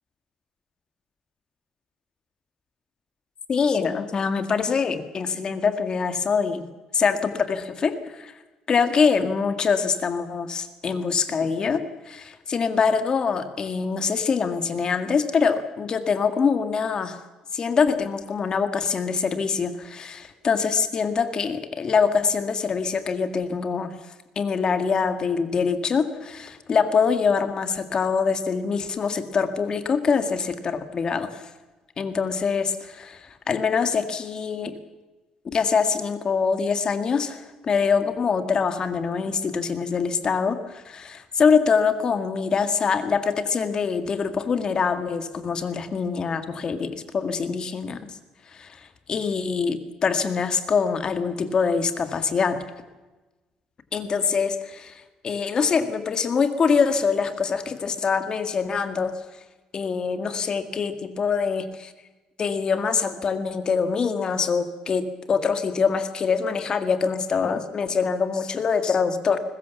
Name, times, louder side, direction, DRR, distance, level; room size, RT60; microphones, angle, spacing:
voice 1, 3.5-6.6 6.9-8.3 8.7-17.2 17.5-23.9 24.4-31.4 32.0-34.8 35.5-48.2 48.5-52.6 53.9-59.2 59.7-61.9 62.4-69.4, left 5 dB, 35° left, 9 dB, 2.0 m, -24 dB
21.5 x 20.5 x 7.1 m, 1.2 s
cardioid pair, 135°, 2 cm